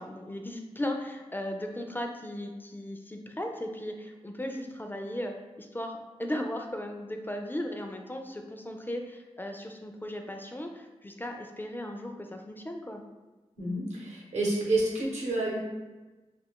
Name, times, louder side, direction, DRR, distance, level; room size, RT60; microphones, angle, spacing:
voice 1, 0.0-13.0, left 1 dB, 15° left, 3 dB, 0.3 m, -37 dB
voice 2, 13.6-15.6, right 2 dB, 75° right, -4 dB, 0.9 m, -29 dB
2.4 x 2.3 x 3.6 m, 1.1 s
wide cardioid pair, 65°, 12 cm